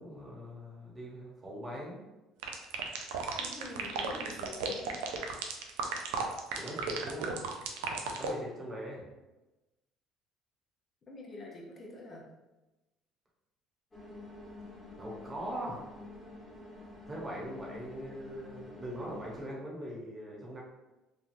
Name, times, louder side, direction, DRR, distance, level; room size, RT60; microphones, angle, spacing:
voice 1, 0.0-2.0 6.6-7.3 8.2-9.0 15.0-15.8 17.1-20.6, equal, 25° right, -4 dB, 1.1 m, -41 dB
sound 1, 2.4-8.3, right 5 dB, 85° right, 0.4 m, -34 dB
voice 2, 3.4-5.0 11.1-12.3, left 2 dB, 40° left, -1 dB, 0.6 m, -46 dB
sound 2, 13.9-19.4, left 2 dB, 20° left, 1.2 m, -48 dB
3.3 x 2.3 x 2.6 m, 1.1 s
supercardioid pair, 80°, 0 cm